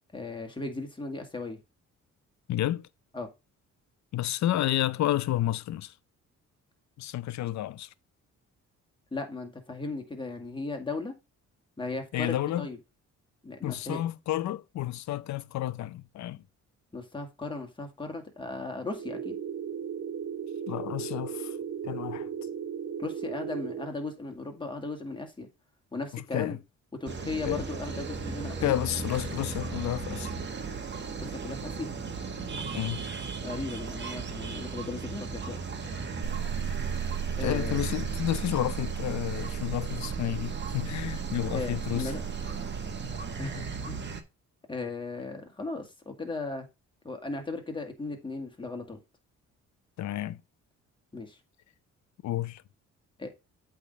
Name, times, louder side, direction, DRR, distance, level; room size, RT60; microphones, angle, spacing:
voice 1, 0.1-1.6 3.1-3.3 9.1-11.1 11.8-12.8 13.4-14.0 16.9-19.4 23.0-25.5 25.9-26.6 27.0-28.7 31.2-31.9 33.4-35.6 37.4-37.8 41.5-42.2 43.4-44.0 44.7-46.7 47.0-49.0 51.1-51.4 53.2-53.3, left 3 dB, 15° left, 2.0 m, -36 dB
voice 2, 2.5-2.9 4.1-5.9 7.0-7.9 12.1-12.7 13.6-16.4 20.7-21.6 21.8-22.3 26.1-26.6 27.5-27.6 28.6-30.3 32.7-33.0 37.4-42.1 50.0-50.4 52.2-52.6, left 13 dB, 65° left, 0.6 m, -31 dB
sound 1, 18.9-23.9, right 8 dB, 55° right, 1.6 m, -36 dB
sound 2, 27.1-44.2, right 4 dB, 35° right, 1.5 m, -36 dB
sound 3, 36.2-44.0, right 9 dB, 75° right, 1.3 m, -36 dB
8.2 x 3.6 x 5.4 m
cardioid pair, 90°, 30 cm